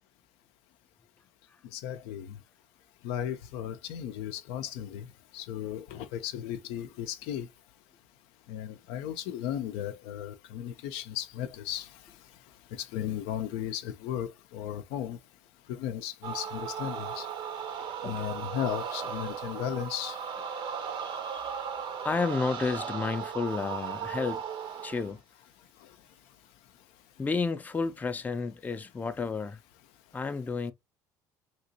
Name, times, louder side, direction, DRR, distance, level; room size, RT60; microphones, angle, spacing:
voice 1, 1.7-2.4 3.0-5.1 5.3-7.5 8.5-12.0 12.7-15.2 15.7-17.3 18.0-20.2 25.8-25.9, left 10 dB, 75° left, 0.4 m, -35 dB
sound 1, 16.2-25.1, right 7 dB, 60° right, 0.7 m, -37 dB
voice 2, 17.9-18.2 21.0-21.5 22.0-24.4 24.8-25.2 27.2-29.6 30.1-30.7, left 4 dB, 15° left, 0.4 m, -31 dB
2.9 x 2.8 x 2.7 m
supercardioid pair, 85°, 10 cm